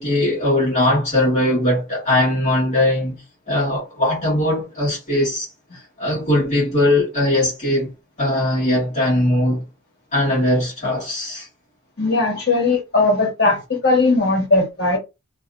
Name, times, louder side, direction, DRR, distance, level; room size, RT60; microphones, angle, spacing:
voice 1, 0.0-5.5 5.7-9.7 10.1-11.5, left 1 dB, 35° left, 1.4 m, -20 dB
voice 2, 12.0-15.0, left 3 dB, 50° left, 1.4 m, -18 dB
2.8 x 2.5 x 2.4 m
head